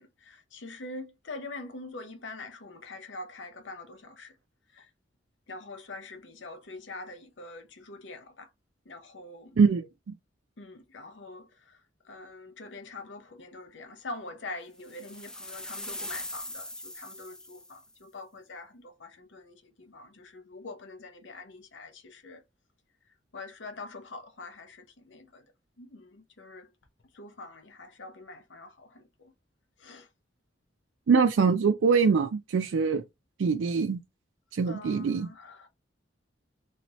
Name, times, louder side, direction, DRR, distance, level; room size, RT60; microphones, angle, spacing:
voice 1, 0.0-4.3 4.7-4.9 5.5-8.5 8.9-9.6 10.6-11.8 12.0-22.4 23.3-25.4 25.8-26.7 27.1-29.3 29.8-30.1 34.6-35.7, left 2 dB, 70° left, 0.8 m, -44 dB
sound 1, 14.8-17.9, left 1 dB, 5° left, 0.3 m, -40 dB
voice 2, 31.1-33.0 33.4-34.0 34.5-35.3, right 5 dB, 90° right, 0.4 m, -23 dB
3.2 x 2.8 x 3.0 m
head